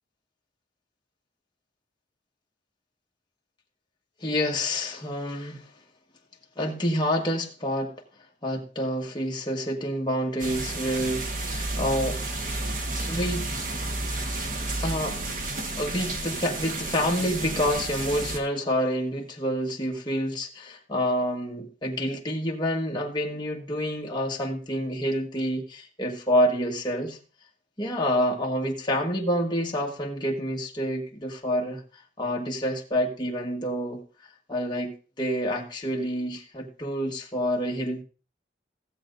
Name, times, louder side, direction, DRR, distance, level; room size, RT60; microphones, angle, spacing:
voice 1, 4.2-5.7 6.6-7.9 8.4-12.2 13.1-13.5 14.8-15.2 15.8-27.2 27.8-31.8 32.2-34.0 34.5-38.0, equal, 25° left, 0 dB, 1.5 m, -28 dB
sound 1, 10.4-18.4, right 2 dB, 50° right, 1.3 m, -31 dB
16.0 x 7.8 x 2.6 m, 0.34 s
head